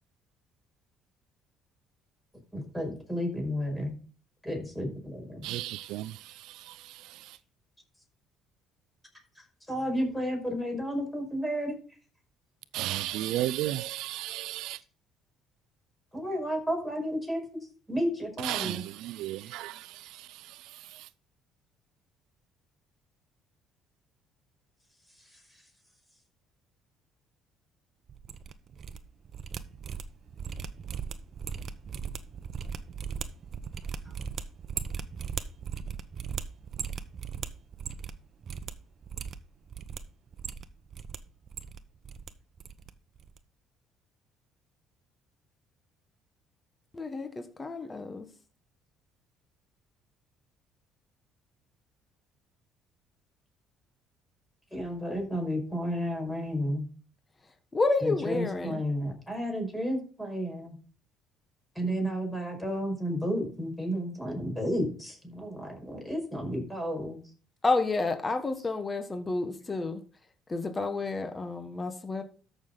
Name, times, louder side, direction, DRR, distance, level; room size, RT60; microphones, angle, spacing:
voice 1, 2.5-4.0 4.4-5.4 9.4-11.8 16.1-17.6 17.9-18.8 25.2-25.6 34.0-34.1 54.7-56.9 58.0-60.8 61.8-67.2, equal, 5° left, 5.4 m, -32 dB
voice 2, 5.4-7.4 12.7-14.8 18.4-21.1, right 15 dB, 80° right, 0.4 m, -35 dB
sound 1, 28.1-29.0 29.2-38.2 38.4-38.7 39.0-40.0 40.3-41.2 41.4-42.3 42.6-42.9 43.2-43.4, right 6 dB, 45° right, 0.9 m, -38 dB
voice 3, 46.9-48.3 57.7-58.8 67.6-70.0 70.5-72.2, left 3 dB, 20° left, 1.4 m, -30 dB
13.5 x 6.5 x 4.0 m
cardioid pair, 105°, 0 cm